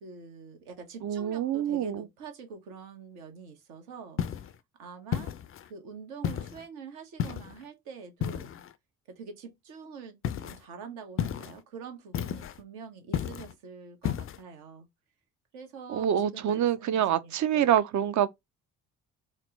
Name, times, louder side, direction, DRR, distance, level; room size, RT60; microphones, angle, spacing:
voice 1, 0.0-4.5 4.8-5.3 5.7-8.5 9.1-10.2 10.4-14.9 15.5-17.7, right 5 dB, 70° right, 1.2 m, -45 dB
voice 2, 1.0-2.1 15.9-18.3, right 10 dB, 40° right, 0.6 m, -26 dB
sound 1, 4.2-4.6 5.1-5.7 6.2-6.6 7.2-7.6 8.2-8.7 10.2-10.6 11.2-11.6 12.1-12.6 13.1-13.5 14.0-14.4, left 9 dB, 30° left, 0.5 m, -32 dB
4.3 x 2.0 x 3.8 m
figure-of-eight pair, 45°, 44 cm